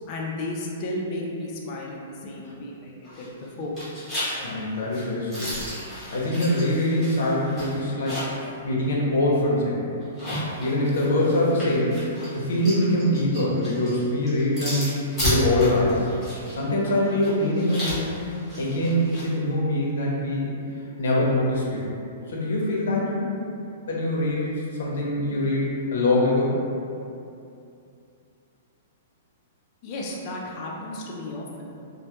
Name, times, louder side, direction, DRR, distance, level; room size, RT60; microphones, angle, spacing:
voice 1, 0.1-3.3 3.6-3.8 29.8-31.7, left 1 dB, 25° left, -2 dB, 0.3 m, -33 dB
sound 1, 3.0-3.4 3.8-8.5 8.8-8.9 10.0-19.3, left 1 dB, 10° left, 0.9 m, -33 dB
voice 2, 4.4-5.5 6.1-8.3 8.6-9.9 10.6-12.0 12.3-14.9 15.2-16.1 16.5-18.1 18.6-20.5 21.0-21.9 22.3-23.3 23.9-24.5 24.8-26.5, left 1 dB, 70° left, -4 dB, 0.6 m, -23 dB
2.2 x 2.1 x 2.8 m, 2.6 s
hypercardioid pair, 175°, 0 cm